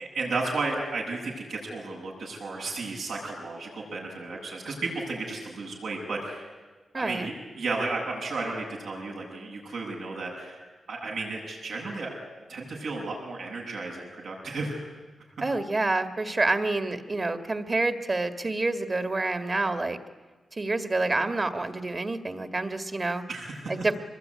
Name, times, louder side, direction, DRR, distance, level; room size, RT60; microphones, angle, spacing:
voice 1, 0.0-6.5 7.0-10.6 10.9-12.1 12.5-14.9 23.3-23.7, right 3 dB, 85° right, -1 dB, 8.0 m, -33 dB
voice 2, 6.9-7.3 15.4-20.0 20.5-23.3 23.7-24.0, right 2 dB, 30° right, 9 dB, 1.9 m, -28 dB
25.0 x 21.0 x 9.8 m, 1.3 s
wide cardioid pair, 95°, 0 cm